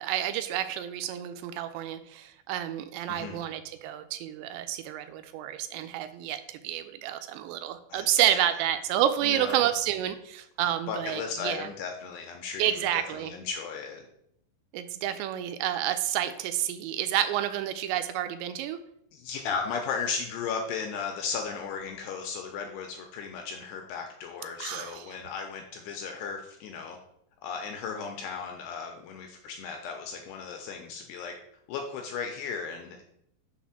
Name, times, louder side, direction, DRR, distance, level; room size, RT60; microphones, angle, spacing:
voice 1, 0.0-11.7 12.6-13.3 14.7-18.8 24.6-24.9, right 11 dB, 85° right, 9 dB, 2.7 m, -29 dB
voice 2, 3.1-3.4 7.9-8.2 9.2-9.6 10.9-14.0 19.1-27.0 27.4-31.3 31.7-33.0, left 5 dB, 80° left, 3 dB, 2.5 m, -35 dB
6.4 x 4.1 x 5.8 m, 0.74 s
omnidirectional pair, 5.3 m